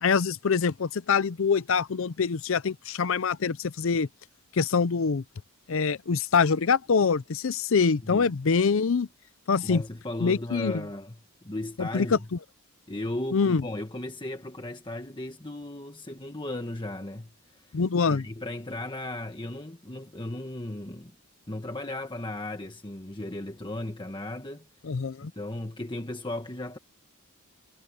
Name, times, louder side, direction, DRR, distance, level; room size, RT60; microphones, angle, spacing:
voice 1, 0.0-4.1 4.5-5.2 5.7-9.1 9.5-9.8 10.2-10.8 11.8-12.2 13.3-13.6 17.7-18.3 24.8-25.3, left 5 dB, 65° left, 0.5 m, -24 dB
voice 2, 9.6-11.2 11.4-12.3 12.9-17.8 18.1-21.1 21.5-24.7 25.2-26.8, left 1 dB, 20° left, 1.4 m, -36 dB
head